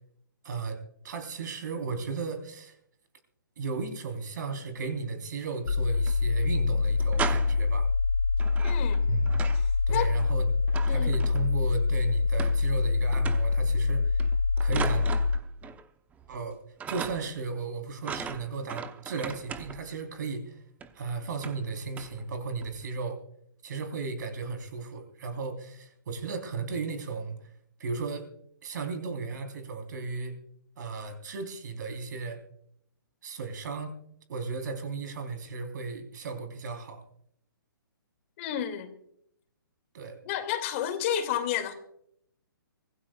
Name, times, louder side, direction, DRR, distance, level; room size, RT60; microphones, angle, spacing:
voice 1, 0.4-2.8 3.6-7.9 9.1-9.4 9.9-10.5 10.9-14.2 14.6-15.1 16.3-16.6 16.9-20.6 20.9-23.2 23.6-27.5 27.8-28.3 28.6-30.4 30.8-32.4 33.2-34.0 34.3-37.0 39.9-40.2, right 4 dB, 55° right, 3.9 m, -35 dB
sound 1, 5.5-6.2 6.4-6.5 6.9-7.7 8.4-9.7 10.0-11.7 12.4-12.9 13.1-13.6 14.2-15.9 16.1-16.5 16.8-17.4 18.0-20.0 20.8-20.9 21.4-21.7 22.0-22.2 22.6-22.9, right 6 dB, 10° right, 0.8 m, -39 dB
sound 2, 5.7-15.4, left 4 dB, 75° left, 0.9 m, -25 dB
voice 2, 8.6-9.0 9.9-10.1 10.9-11.1 38.4-38.9 40.2-41.7, left 10 dB, 35° left, 2.5 m, -30 dB
25.0 x 16.5 x 2.4 m
figure-of-eight pair, 135°, 12 cm